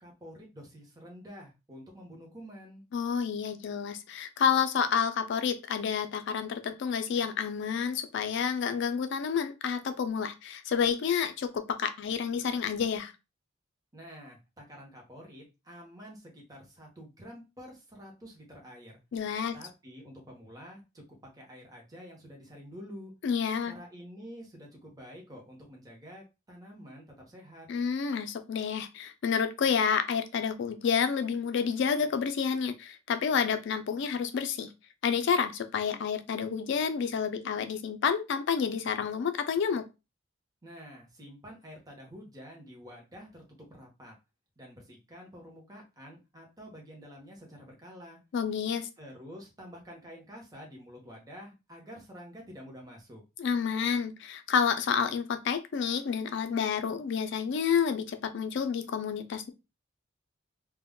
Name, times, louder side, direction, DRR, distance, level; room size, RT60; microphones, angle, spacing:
voice 1, 0.0-2.8 13.9-19.0 19.5-21.0 21.3-23.1 23.7-27.7 40.6-43.4 43.7-44.1 44.6-48.2 49.0-53.2, equal, 20° right, -1 dB, 0.8 m, -48 dB
voice 2, 2.9-13.1 19.1-19.5 23.2-23.7 27.7-34.7 35.0-39.8 48.3-48.9 53.4-59.5, left 6 dB, 60° left, 9 dB, 0.4 m, -29 dB
2.2 x 2.0 x 3.6 m, 0.26 s
head